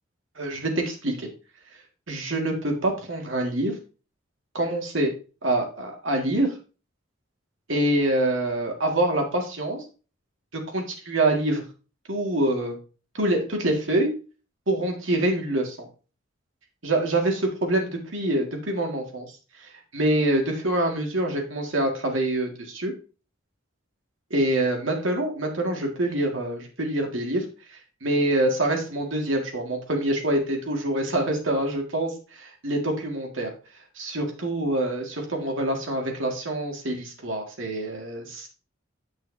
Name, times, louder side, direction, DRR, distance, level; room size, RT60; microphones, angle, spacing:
voice 1, 0.4-1.3 2.1-3.8 4.5-5.1 5.4-6.5 7.7-9.8 10.5-11.6 12.1-12.7 13.2-14.1 14.7-15.9 16.8-19.3 19.6-22.9 24.3-27.4 27.7-33.5 34.0-38.5, right 1 dB, 85° right, 2 dB, 2.0 m, -25 dB
8.5 x 6.2 x 2.7 m, 0.35 s
head